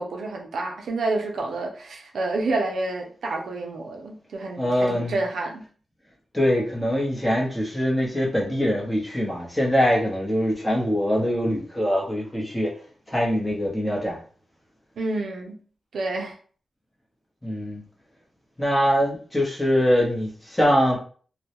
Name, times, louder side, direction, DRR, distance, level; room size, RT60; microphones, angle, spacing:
voice 1, 0.0-5.6 15.0-15.6 15.9-16.3, right 2 dB, 80° right, 1 dB, 0.4 m, -29 dB
voice 2, 4.6-5.2 6.3-12.7 13.1-14.2 17.4-17.8 18.6-21.0, equal, 10° left, -3 dB, 0.8 m, -23 dB
2.2 x 2.1 x 2.8 m, 0.43 s
wide cardioid pair, 90°, 0 cm